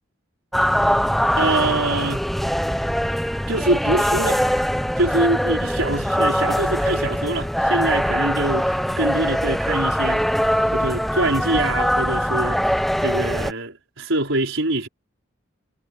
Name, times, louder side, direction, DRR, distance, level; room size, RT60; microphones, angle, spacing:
sound 1, 0.5-13.5, equal, ahead, 0.3 m, -22 dB
voice 1, 1.4-2.2 3.5-4.4 5.0-10.2 10.7-12.6 13.0-14.9, right 2 dB, 80° right, 4.6 m, -24 dB
head